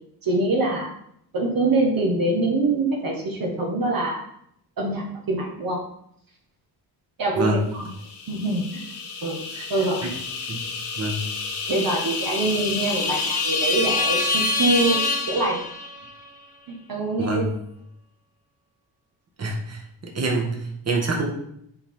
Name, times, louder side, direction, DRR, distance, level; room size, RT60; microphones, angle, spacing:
voice 1, 0.2-0.9 1.3-4.2 4.8-5.8 7.2-7.9 8.3-8.8 9.2-9.4 9.7-10.0 11.7-15.6 16.7-17.4, right 2 dB, 55° right, -2 dB, 1.7 m, -24 dB
voice 2, 7.4-7.7 9.5-9.7 10.0-10.1 10.5-10.6 11.0-11.2 17.2-17.5 19.4-21.3, right 2 dB, 40° right, 0 dB, 1.8 m, -26 dB
sound 1, 8.1-16.1, left 3 dB, 75° left, 1.5 m, -27 dB
9.6 x 4.4 x 3.9 m, 0.72 s
cardioid pair, 85°, 40 cm